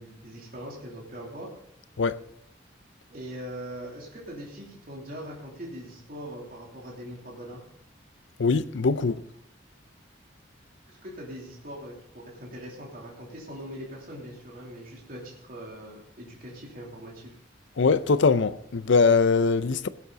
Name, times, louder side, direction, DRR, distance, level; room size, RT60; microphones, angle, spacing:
voice 1, 0.0-1.5 3.1-7.6 10.9-17.4, equal, 50° right, 3.0 m, -41 dB
voice 2, 8.4-9.2 17.8-19.9, left 4 dB, 75° left, 0.5 m, -22 dB
18.0 x 8.2 x 3.9 m
head